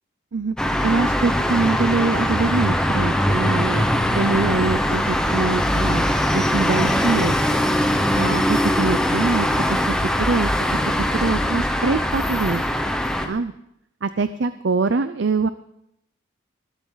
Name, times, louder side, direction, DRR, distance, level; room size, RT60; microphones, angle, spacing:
sound 1, 0.6-13.3, equal, 5° left, 1.1 m, -21 dB
voice 1, 0.8-3.8 4.1-7.4 8.1-12.6 13.2-13.5 14.0-15.5, right 4 dB, 60° right, 12 dB, 0.5 m, -24 dB
19.5 x 13.0 x 4.0 m, 0.80 s
head